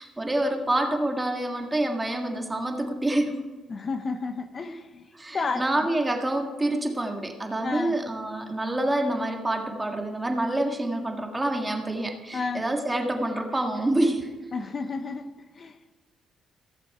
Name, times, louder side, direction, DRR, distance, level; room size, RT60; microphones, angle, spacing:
voice 1, 0.0-3.4 4.7-4.8 5.1-14.3, right 1 dB, 15° right, 3 dB, 1.6 m, -27 dB
voice 2, 3.7-5.1 5.3-5.9 7.6-8.0 12.3-12.6 14.5-15.3 15.6-15.8, left 4 dB, 45° left, 10 dB, 0.6 m, -31 dB
15.0 x 6.8 x 4.7 m, 1.4 s
cardioid pair, 80°, 0 cm